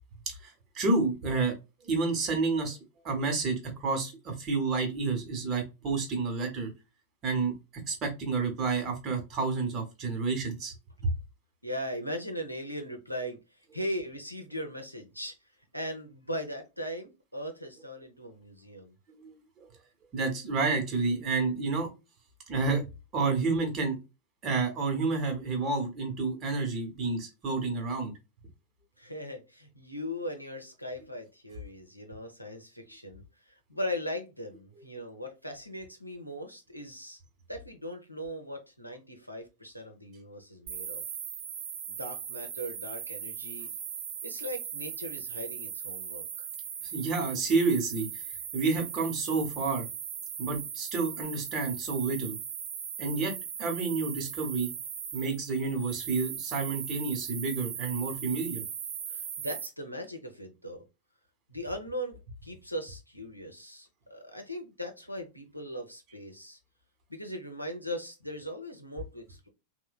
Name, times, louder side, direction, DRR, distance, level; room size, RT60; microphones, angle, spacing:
voice 1, 0.3-1.5 1.9-2.8 3.0-6.7 7.2-7.5 7.9-10.7 11.0-11.1 19.2-19.3 20.1-21.9 22.5-24.0 24.4-28.1 46.9-48.1 48.5-49.9 50.4-52.4 53.0-54.7 55.1-58.6, right 4 dB, 30° right, 3 dB, 1.0 m, -29 dB
voice 2, 11.6-15.3 15.7-19.0 29.0-37.2 37.5-41.2 41.9-43.7 44.2-46.5 59.1-60.8 61.5-66.6 67.1-69.5, equal, 90° left, 4 dB, 0.6 m, -39 dB
sound 1, 40.7-59.7, right 8 dB, 45° right, 0.6 m, -39 dB
3.1 x 2.1 x 2.3 m, 0.26 s
figure-of-eight pair, 90°, 0 cm